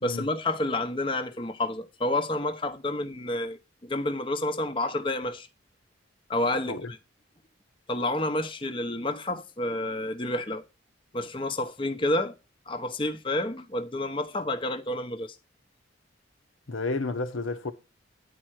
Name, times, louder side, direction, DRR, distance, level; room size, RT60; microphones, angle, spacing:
voice 1, 0.0-5.5 6.3-7.0 7.9-10.6 11.1-12.3 12.7-15.4, left 1 dB, 25° left, 0.9 m, -29 dB
voice 2, 16.7-17.7, left 3 dB, 80° left, 1.0 m, -31 dB
10.0 x 4.4 x 6.3 m
head